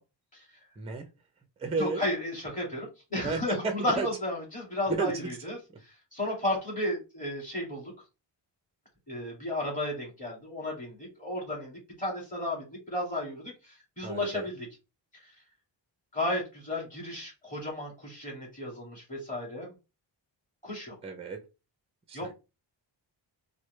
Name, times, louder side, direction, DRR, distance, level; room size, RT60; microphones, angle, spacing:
voice 1, 0.8-1.1 1.6-2.1 3.2-4.1 4.9-5.4 5.7-5.8 14.0-14.5 21.0-21.4 22.1-22.3, right 4 dB, 15° right, 6 dB, 0.5 m, -33 dB
voice 2, 1.8-5.6 6.1-7.9 9.1-14.7 16.1-19.7 20.6-21.0 22.1-22.3, left 1 dB, 15° left, -4 dB, 2.2 m, -33 dB
4.7 x 2.1 x 3.1 m, 0.28 s
wide cardioid pair, 145°, 45 cm